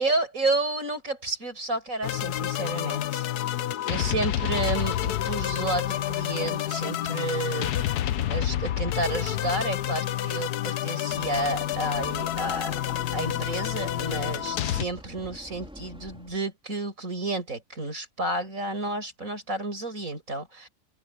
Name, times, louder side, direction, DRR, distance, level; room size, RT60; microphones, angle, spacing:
voice 1, 0.0-7.7 8.3-12.7 13.1-20.7, right 2 dB, 60° right, 6.6 m, -31 dB
sound 1, 2.0-14.8, left 12 dB, 85° left, 1.3 m, -29 dB
sound 2, 11.1-16.4, equal, 5° right, 3.8 m, -45 dB
omnidirectional pair, 1.6 m